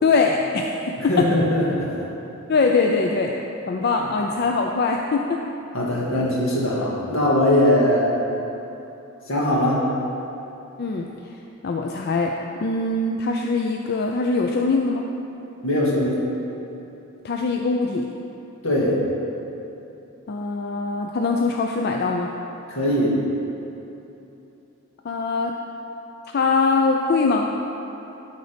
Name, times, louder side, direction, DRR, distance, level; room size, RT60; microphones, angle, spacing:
voice 1, 0.0-1.3 2.5-3.3 3.7-5.4 10.8-11.1 11.6-12.3 12.6-15.0 17.2-18.1 20.3-22.3 25.0-25.6 26.3-27.5, left 4 dB, 50° left, 1 dB, 0.4 m, -22 dB
voice 2, 1.0-2.0 5.7-8.2 9.3-9.9 15.6-16.2 18.6-19.0 22.7-23.2, left 1 dB, 80° left, -4 dB, 1.8 m, -21 dB
12.0 x 4.0 x 5.1 m, 2.9 s
head